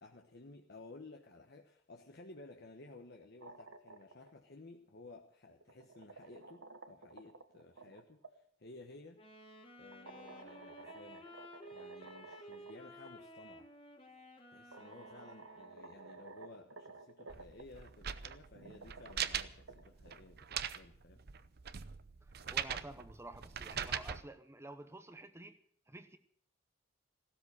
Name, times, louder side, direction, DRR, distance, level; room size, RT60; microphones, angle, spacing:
voice 1, 0.0-9.3 9.8-11.3 11.7-13.7 14.5-21.3, left 2 dB, 55° left, 1.2 m, -55 dB
sound 1, 3.2-4.3 5.5-8.3 9.9-12.7 13.0-13.1 14.2-14.3 14.7-17.6 18.5-20.2, right 3 dB, 85° right, 1.3 m, -53 dB
Wind instrument woodwind instrument, 9.1-16.0, equal, 30° left, 1.7 m, -54 dB
sound 2, 17.3-24.2, right 8 dB, 55° right, 0.7 m, -41 dB
voice 2, 22.2-25.6 25.9-26.2, right 2 dB, 15° right, 0.8 m, -51 dB
16.0 x 13.0 x 6.4 m
head